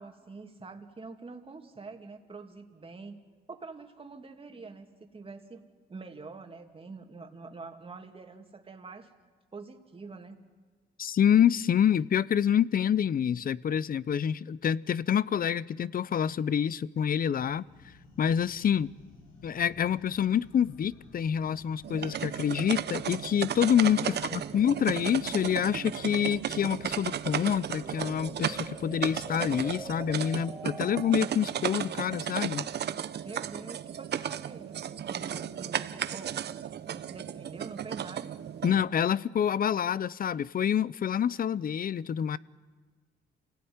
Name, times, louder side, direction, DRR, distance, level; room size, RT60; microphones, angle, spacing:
voice 1, 0.0-3.2 3.5-5.6 5.9-9.1 9.5-10.4 24.0-24.5 33.2-36.4 36.9-38.3, right 4 dB, 30° right, 4 dB, 2.7 m, -45 dB
voice 2, 11.0-17.6 18.2-18.9 19.4-32.7 38.6-42.4, left 9 dB, 45° left, 19 dB, 0.7 m, -27 dB
sound 1, 17.4-30.2, left 3 dB, 85° left, 6.8 m, -53 dB
sound 2, 21.8-38.8, right 9 dB, 55° right, 0.9 m, -35 dB
sound 3, 24.2-31.6, right 1 dB, 5° right, 2.9 m, -49 dB
28.0 x 17.5 x 9.6 m, 1.4 s
cardioid pair, 90°, 20 cm